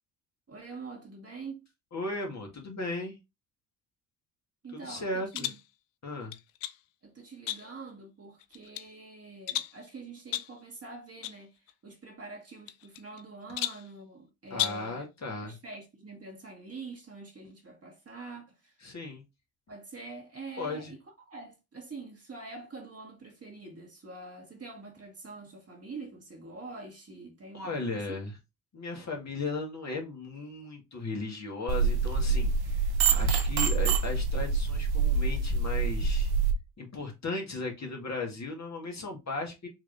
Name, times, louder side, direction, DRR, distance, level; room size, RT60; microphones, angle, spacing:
voice 1, 0.5-1.6 4.6-5.6 7.0-11.5 11.8-15.1 15.4-18.8 19.7-21.0 21.3-28.2, right 3 dB, 35° right, 1.8 m, -45 dB
voice 2, 1.9-3.2 4.7-5.5 6.0-6.3 14.5-15.6 18.8-19.2 20.6-20.9 27.5-28.3 28.7-36.3 36.8-39.7, left 3 dB, 40° left, 1.9 m, -36 dB
sound 1, 5.3-5.7 6.3-6.8 7.5-7.9 8.4-8.9 9.5-9.8 10.3-10.6 11.2-11.4 11.7-11.8 12.7-13.2 13.6-13.9 14.5-14.9, left 13 dB, 80° left, 0.5 m, -34 dB
sound 2, 31.7-36.5, right 4 dB, 60° right, 0.9 m, -26 dB
4.7 x 3.2 x 2.6 m
hypercardioid pair, 55°, 43 cm